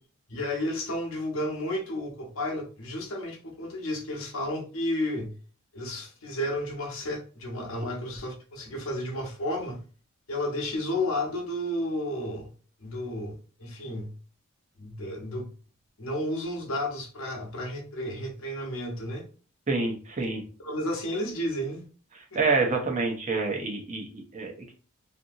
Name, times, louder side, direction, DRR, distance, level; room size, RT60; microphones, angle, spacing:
voice 1, 0.3-5.3 5.7-9.8 10.3-12.5 12.8-13.3 13.6-14.1 14.8-15.5 16.0-19.2 20.6-21.8 22.3-22.4, left 1 dB, 80° left, 0.8 m, -32 dB
voice 2, 19.7-20.4 22.3-24.7, right 3 dB, 35° right, 0.7 m, -27 dB
2.8 x 2.6 x 2.5 m
head